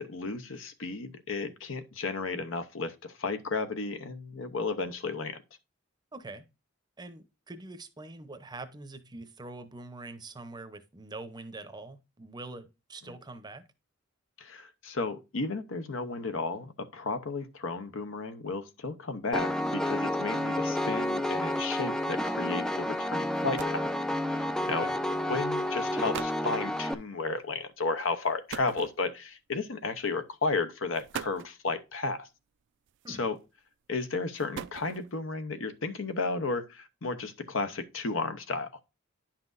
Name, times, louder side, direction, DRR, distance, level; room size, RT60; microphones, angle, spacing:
voice 1, 0.0-5.4 14.4-23.9 24.3-24.9 25.3-32.3 33.1-33.4 33.9-38.7, left 3 dB, 70° left, 0.8 m, -33 dB
voice 2, 6.1-6.5 7.0-13.6 24.7-25.0 33.0-33.3, right 2 dB, 20° right, 0.7 m, -44 dB
Piano, 19.3-26.9, left 1 dB, 5° left, 0.4 m, -30 dB
sound 1, 23.0-23.1 23.3-23.9 24.9-25.2 25.8-25.9 26.1-26.5 28.5-29.3 30.3-30.4 30.9-31.6 32.9-33.4 34.2-35.2, right 8 dB, 65° right, 0.4 m, -41 dB
10.0 x 5.9 x 2.5 m
head